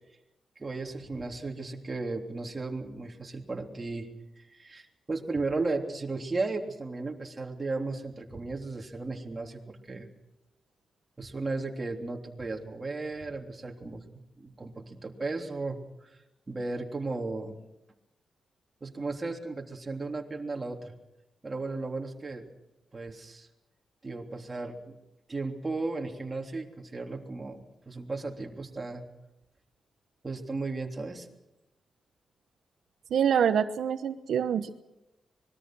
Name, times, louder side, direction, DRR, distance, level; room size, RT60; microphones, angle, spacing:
voice 1, 0.6-4.1 4.5-10.1 11.2-14.0 14.4-16.2 16.5-17.6 18.8-20.9 21.4-22.4 22.9-23.5 24.0-24.9 25.3-29.0 30.2-31.3, right 3 dB, 25° right, 1 dB, 3.4 m, -35 dB
voice 2, 33.1-34.7, right 8 dB, 80° right, 8 dB, 1.0 m, -25 dB
25.5 x 21.5 x 6.3 m, 0.92 s
wide cardioid pair, 135°, 0 cm